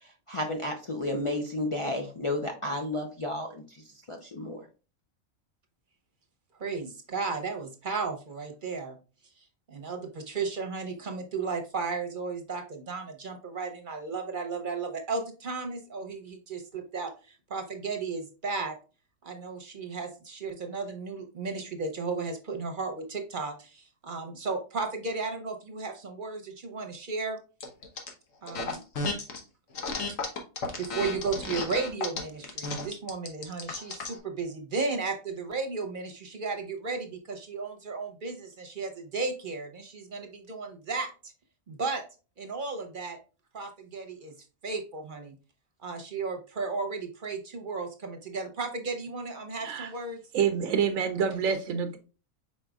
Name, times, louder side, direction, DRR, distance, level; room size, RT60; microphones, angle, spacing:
voice 1, 0.0-4.7, left 1 dB, 50° left, 0.3 m, -32 dB
voice 2, 6.6-9.0 9.7-18.7 19.2-27.4 28.4-28.8 30.1-30.2 30.8-41.3 41.7-42.0 42.4-43.2 43.5-44.3 44.6-45.3 45.8-50.2, right 4 dB, 45° right, 0.8 m, -34 dB
sound 1, 27.6-28.1 28.5-29.4 29.7-34.2, left 3 dB, 75° left, 1.4 m, -33 dB
voice 3, 49.5-49.9 50.3-52.0, right 7 dB, 80° right, 1.0 m, -27 dB
5.2 x 4.4 x 2.3 m
omnidirectional pair, 1.4 m